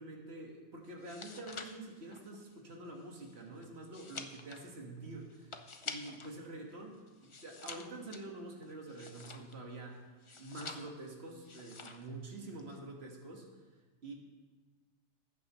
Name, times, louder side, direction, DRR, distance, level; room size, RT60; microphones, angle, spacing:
voice 1, 0.0-13.5 14.0-14.1, right 2 dB, 50° right, 0 dB, 2.0 m, -47 dB
sound 1, 0.9-6.4 6.7-9.7 10.2-11.1 11.4-12.1 12.4-12.8, left 4 dB, 35° left, 0.5 m, -48 dB
20.0 x 9.2 x 3.1 m, 1.3 s
omnidirectional pair, 1.4 m